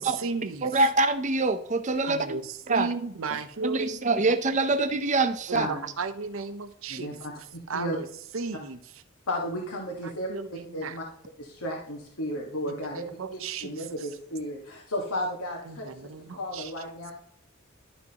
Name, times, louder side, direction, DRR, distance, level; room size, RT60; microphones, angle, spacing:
voice 1, 0.0-0.9 2.0-4.4 5.5-8.1 8.3-8.9 10.0-11.0 12.7-14.1 15.6-16.7, right 4 dB, 70° right, 11 dB, 0.6 m, -35 dB
voice 2, 0.6-2.3 2.7-2.9 3.6-5.7, right 3 dB, 35° right, 10 dB, 0.6 m, -25 dB
voice 3, 6.9-8.0 9.3-10.3 10.7-11.0 11.4-15.9 16.4-17.1, equal, 90° left, -1 dB, 1.6 m, -33 dB
11.5 x 6.1 x 2.9 m, 0.68 s
head